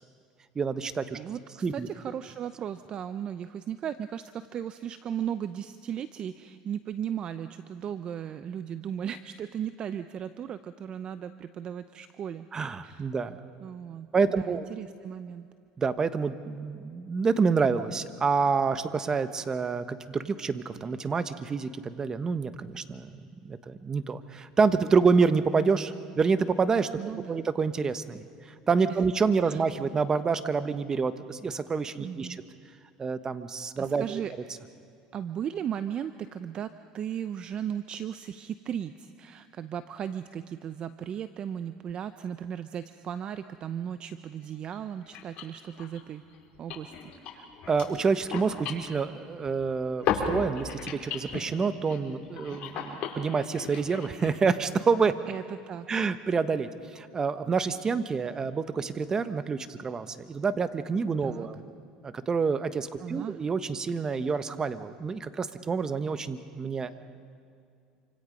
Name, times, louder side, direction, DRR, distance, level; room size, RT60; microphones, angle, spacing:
voice 1, 0.5-1.2 1.6-1.9 12.5-13.4 14.1-14.7 15.8-26.9 27.3-28.2 28.7-32.4 33.0-34.2 47.7-55.2 55.9-56.7 56.9-61.6 62.0-67.0, right 5 dB, 25° right, 11 dB, 1.3 m, -27 dB
voice 2, 1.1-12.5 12.8-13.1 13.6-15.5 27.0-27.5 28.9-29.0 29.4-29.6 32.0-32.4 33.8-34.3 35.1-46.2 46.6-47.1 55.3-55.9 61.2-61.5 63.0-63.4, right 9 dB, 40° right, 12 dB, 0.7 m, -36 dB
sound 1, 44.4-44.5 44.7-44.8 45.0-49.7 50.0-54.4, left 6 dB, 55° left, 4.8 m, -36 dB
27.5 x 25.5 x 5.4 m, 2.4 s
supercardioid pair, 105°, 2 cm